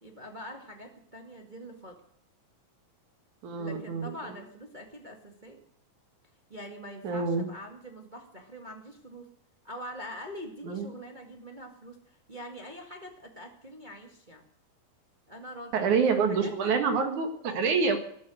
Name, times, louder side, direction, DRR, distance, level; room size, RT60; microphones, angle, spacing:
voice 1, 0.0-2.0 3.5-5.6 6.5-9.3 9.6-14.4 15.3-15.9 16.1-16.9, equal, 20° right, 2 dB, 1.3 m, -44 dB
voice 2, 3.4-4.1 7.0-7.5 10.6-10.9 15.7-18.0, right 5 dB, 65° right, 6 dB, 3.0 m, -27 dB
14.0 x 13.0 x 6.3 m, 0.65 s
omnidirectional pair, 3.9 m